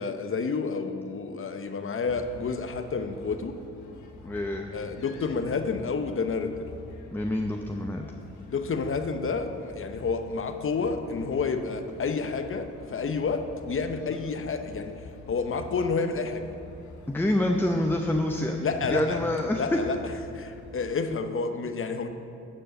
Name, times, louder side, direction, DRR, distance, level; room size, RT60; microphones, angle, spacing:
voice 1, 0.0-3.6 4.7-6.7 8.5-15.0 15.3-16.5 18.6-19.2 19.5-20.0 20.3-22.1, left 4 dB, 45° left, 8 dB, 0.9 m, -30 dB
sound 1, 2.1-21.0, left 3 dB, 85° left, 1.0 m, -47 dB
voice 2, 4.2-4.7 7.1-8.1 17.1-18.6 18.9-19.6, left 1 dB, 5° left, 3 dB, 0.7 m, -27 dB
12.0 x 4.4 x 7.6 m, 2.6 s
supercardioid pair, 60°, 29 cm